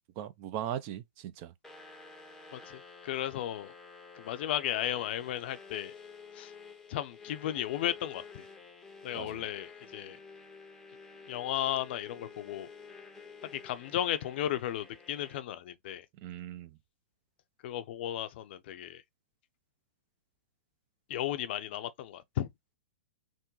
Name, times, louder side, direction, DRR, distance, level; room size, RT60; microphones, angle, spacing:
voice 1, 0.2-1.5 9.1-9.4 16.2-16.8, right 11 dB, 40° right, 0.5 m, -39 dB
sound 1, 1.6-15.4, left 5 dB, 5° left, 0.7 m, -51 dB
voice 2, 2.5-3.7 4.1-5.9 6.3-6.5 6.9-8.5 9.0-10.2 11.3-12.7 13.5-16.1 17.6-19.0 21.1-22.5, left 12 dB, 55° left, 0.5 m, -35 dB
3.5 x 2.2 x 3.0 m
hypercardioid pair, 130°, 7 cm